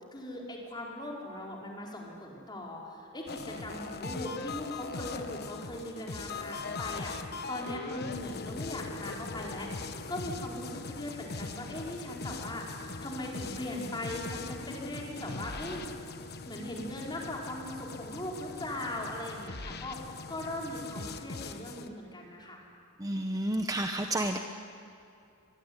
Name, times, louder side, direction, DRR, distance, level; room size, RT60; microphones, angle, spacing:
voice 1, 0.1-12.7 13.0-15.8 16.4-22.6, left 1 dB, 20° left, -2 dB, 4.9 m, -39 dB
sound 1, 3.3-21.9, left 3 dB, 50° left, 1.1 m, -41 dB
voice 2, 23.0-24.4, right 1 dB, 15° right, 5 dB, 0.9 m, -30 dB
23.5 x 22.5 x 9.8 m, 2.6 s
head